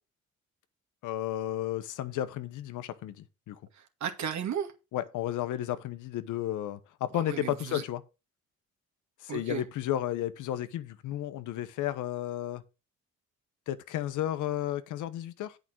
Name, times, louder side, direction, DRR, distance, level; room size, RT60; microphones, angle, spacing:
voice 1, 1.0-3.6 4.9-8.0 9.2-12.6 13.7-15.6, left 12 dB, 85° left, 1.0 m, -33 dB
voice 2, 3.7-4.7 7.1-7.8 9.3-9.6, right 8 dB, 65° right, 2.2 m, -35 dB
8.7 x 5.3 x 6.2 m
cardioid pair, 90°, 30 cm